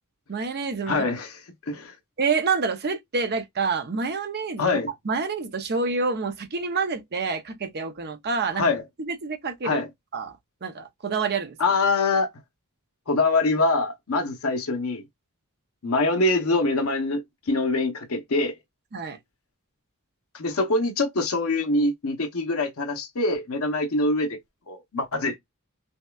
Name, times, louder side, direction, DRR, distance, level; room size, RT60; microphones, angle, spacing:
voice 1, 0.3-1.1 2.2-4.8 5.0-8.7 9.0-9.8 10.1-10.3 10.6-11.6 18.9-19.2, right 4 dB, 45° right, 0.6 m, -27 dB
voice 2, 0.9-1.4 1.7-1.9 4.6-4.9 8.5-8.8 9.6-9.9 11.6-12.3 13.1-15.0 15.8-18.5 20.3-24.4 24.7-25.4, left 2 dB, 65° left, 0.8 m, -24 dB
5.4 x 2.3 x 2.3 m
head